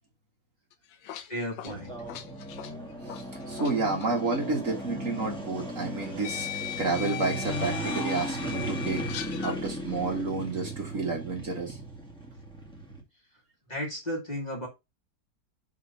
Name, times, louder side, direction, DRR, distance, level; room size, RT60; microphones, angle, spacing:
sound 1, 0.7-3.7 4.0-4.2 5.3-5.4 6.2-9.6, left 12 dB, 90° left, 1.5 m, -38 dB
voice 1, 1.3-2.0 13.7-14.7, equal, 20° left, -1 dB, 2.1 m, -34 dB
sound 2, 1.7-13.0, right 1 dB, 5° left, 2.1 m, -36 dB
voice 2, 3.5-11.8, right 3 dB, 45° right, 1 dB, 1.9 m, -30 dB
6.1 x 3.8 x 5.5 m, 0.23 s
omnidirectional pair, 2.0 m